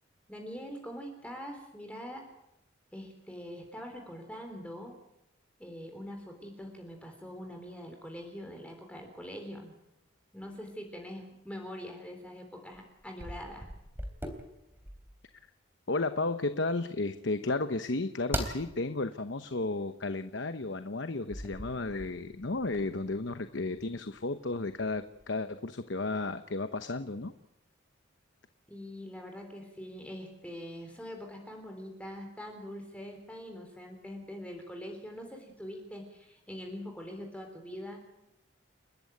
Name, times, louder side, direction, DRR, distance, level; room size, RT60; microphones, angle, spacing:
voice 1, 0.3-2.3 2.9-5.0 5.6-9.7 10.3-13.7 28.7-38.0, equal, 5° left, 3 dB, 3.7 m, -43 dB
sound 1, 12.7-15.2 18.3-18.6 21.3-24.2 24.7-25.2, right 1 dB, 10° right, 3.4 m, -40 dB
voice 2, 15.9-27.3, left 2 dB, 60° left, 10 dB, 1.0 m, -33 dB
30.0 x 14.0 x 9.4 m, 0.87 s
head